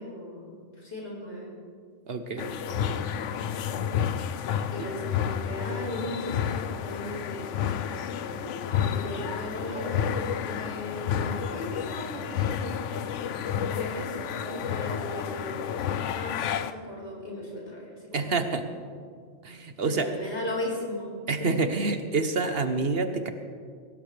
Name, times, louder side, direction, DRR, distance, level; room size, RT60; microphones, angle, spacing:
voice 1, 0.0-1.5 2.3-3.0 4.2-12.8 13.7-15.7 16.1-18.6 19.8-21.1 21.4-21.6, left 1 dB, 70° left, -4 dB, 5.3 m, -37 dB
voice 2, 2.1-2.5 4.8-4.9 18.1-18.7 19.4-20.1 21.3-23.3, right 3 dB, 55° right, 8 dB, 1.2 m, -27 dB
sound 1, 2.4-16.7, left 8 dB, 90° left, 1.0 m, -30 dB
23.0 x 17.5 x 3.4 m, 2.1 s
omnidirectional pair, 1.2 m